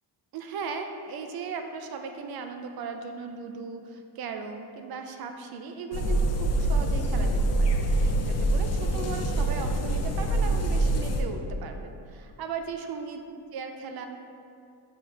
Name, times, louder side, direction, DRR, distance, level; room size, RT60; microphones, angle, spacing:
voice 1, 0.3-13.2 13.5-14.1, right 5 dB, 50° right, 5 dB, 0.6 m, -37 dB
sound 1, 5.9-11.2, right 1 dB, 35° left, 0.6 m, -25 dB
6.0 x 4.3 x 4.6 m, 2.5 s
cardioid pair, 130°, 47 cm